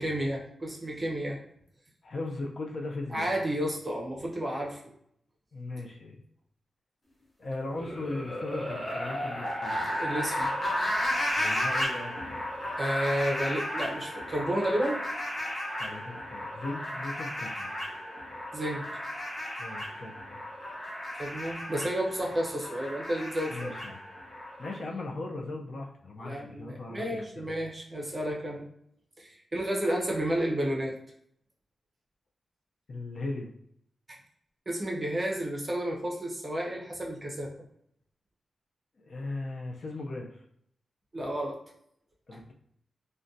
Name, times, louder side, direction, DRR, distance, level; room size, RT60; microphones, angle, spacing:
voice 1, 0.0-1.4 3.1-4.8 10.0-10.5 12.8-15.0 18.5-18.8 21.2-23.7 26.2-28.7 29.2-30.9 34.7-37.5 41.1-41.6 42.3-42.4, right 1 dB, 20° right, -1 dB, 0.6 m, -31 dB
voice 2, 2.0-3.3 5.5-6.2 7.4-9.8 11.4-12.1 15.8-17.8 19.6-20.4 23.5-24.0 24.6-27.6 32.9-33.5 39.0-40.4 42.3-42.5, left 2 dB, 45° left, 1 dB, 0.4 m, -38 dB
sound 1, 7.7-24.7, left 1 dB, 25° left, 0.8 m, -34 dB
2.5 x 2.2 x 3.6 m, 0.70 s
wide cardioid pair, 170°, 0 cm